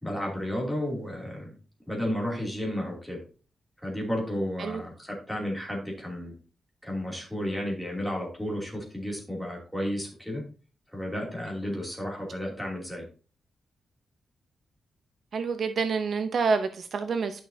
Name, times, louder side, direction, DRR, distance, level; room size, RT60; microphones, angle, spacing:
voice 1, 0.0-1.5 1.9-3.2 3.8-6.3 6.8-10.4 10.9-13.1, equal, ahead, 2.7 m, -32 dB
voice 2, 15.3-17.4, right 5 dB, 55° right, 0.6 m, -27 dB
10.5 x 6.1 x 2.7 m
wide cardioid pair, 160°, 0 cm